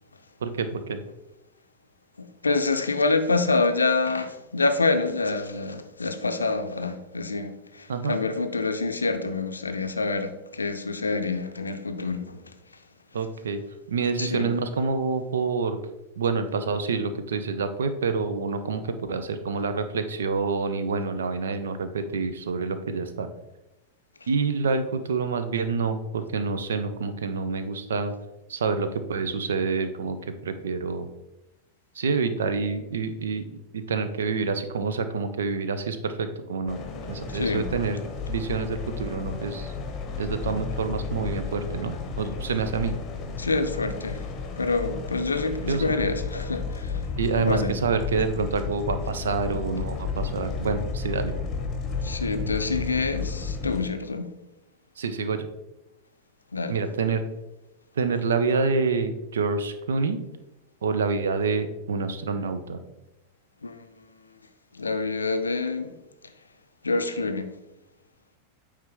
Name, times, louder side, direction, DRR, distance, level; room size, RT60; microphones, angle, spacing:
voice 1, 0.4-1.0 7.9-8.2 13.1-13.6 13.9-15.8 16.2-18.8 19.1-23.3 24.3-28.1 28.5-30.2 30.4-31.1 32.0-33.4 33.7-38.0 38.3-39.7 40.2-42.9 45.7-45.8 47.2-51.3 55.0-55.5 56.7-57.2 58.0-60.2 60.8-62.8, right 4 dB, 65° right, 0.5 m, -27 dB
voice 2, 2.2-12.5 14.2-14.5 37.3-37.7 43.4-44.2 44.6-47.1 47.4-47.7 52.0-54.3 56.5-56.8 63.6-64.1 64.7-66.0 66.8-67.5, left 3 dB, 75° left, 0.5 m, -27 dB
sound 1, 36.7-53.8, left 4 dB, 30° left, 0.9 m, -33 dB
8.7 x 3.3 x 3.5 m
figure-of-eight pair, 90°, 0 cm